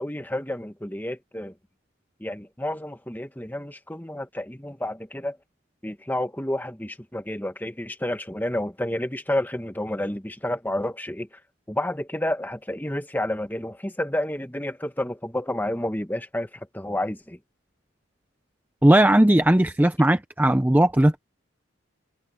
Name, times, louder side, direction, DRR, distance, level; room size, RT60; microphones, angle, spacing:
voice 1, 0.0-1.5 2.2-5.4 5.8-11.3 11.7-17.4, left 1 dB, 10° left, 1.4 m, -30 dB
voice 2, 18.8-21.2, right 1 dB, 10° right, 0.5 m, -18 dB
head